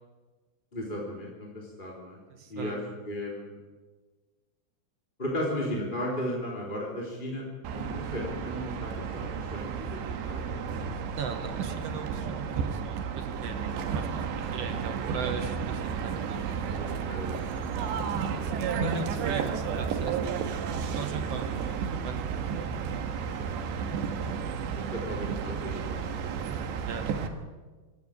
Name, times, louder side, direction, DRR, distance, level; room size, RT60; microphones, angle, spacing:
voice 1, 0.7-2.2 2.5-3.6 5.2-7.4 7.7-10.9 16.7-18.5 23.4-26.8, equal, 10° left, -3 dB, 3.2 m, -36 dB
voice 2, 2.3-2.8 11.1-13.6 13.9-16.2 18.8-20.5 20.8-22.3 22.5-22.7 26.8-27.4, right 5 dB, 55° right, 6 dB, 1.9 m, -38 dB
sound 1, 7.6-27.3, right 6 dB, 85° right, 3.7 m, -32 dB
26.5 x 13.0 x 8.9 m, 1.3 s
omnidirectional pair, 4.9 m